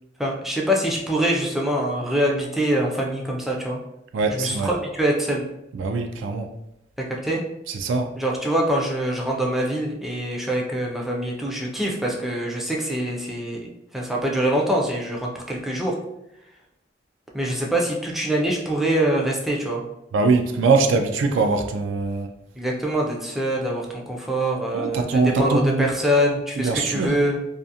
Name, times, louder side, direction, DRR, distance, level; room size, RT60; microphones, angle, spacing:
voice 1, 0.2-3.8 4.3-5.4 7.2-7.4 8.2-16.0 17.3-19.8 22.6-27.4, right 1 dB, ahead, -2 dB, 0.3 m, -24 dB
voice 2, 4.1-4.7 5.7-6.5 7.7-8.1 20.1-22.3 24.7-25.9 26.6-27.1, right 4 dB, 75° right, 5 dB, 0.3 m, -22 dB
2.4 x 2.4 x 2.7 m, 0.86 s
head